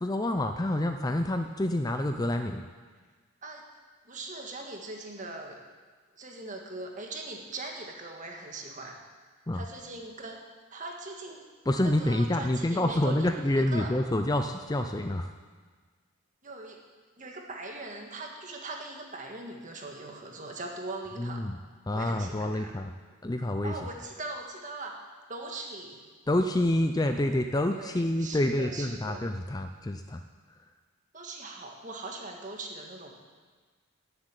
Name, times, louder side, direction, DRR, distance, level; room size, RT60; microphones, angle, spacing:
voice 1, 0.0-2.7 9.5-9.7 11.7-15.3 21.2-21.6 21.9-22.9 23.2-23.7 26.3-30.2 30.5-30.7, left 1 dB, 15° left, 6 dB, 0.5 m, -28 dB
voice 2, 4.0-5.6 6.1-9.0 9.5-10.4 10.7-11.4 11.8-13.9 16.4-16.8 17.2-21.4 21.9-22.8 23.6-26.0 27.7-29.2 31.1-33.2, right 2 dB, 35° right, 2 dB, 1.7 m, -41 dB
13.0 x 8.0 x 9.1 m, 1.4 s
head